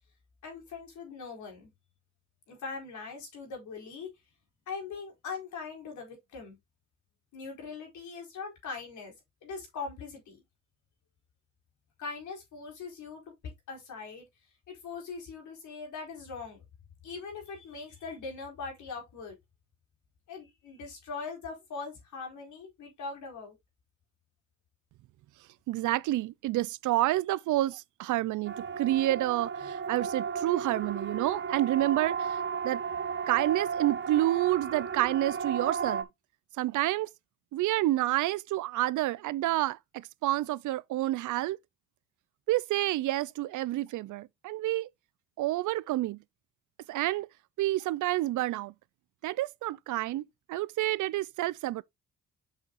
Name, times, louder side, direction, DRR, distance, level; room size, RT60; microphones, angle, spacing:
voice 1, 0.4-1.7 2.5-4.1 4.7-6.6 7.3-9.1 9.4-10.4 12.0-13.2 13.7-14.3 14.7-16.6 17.0-19.4 20.3-23.6, left 4 dB, 75° left, 4.7 m, -41 dB
voice 2, 25.7-32.8 33.3-36.1 36.6-37.1 37.5-41.6 42.5-44.9 45.4-46.2 46.9-47.3 47.6-48.7 49.2-51.8, right 16 dB, 80° right, 0.5 m, -29 dB
Siren, 28.4-36.0, right 6 dB, 40° right, 1.0 m, -34 dB
8.1 x 6.3 x 2.5 m
cardioid pair, 90°, 30 cm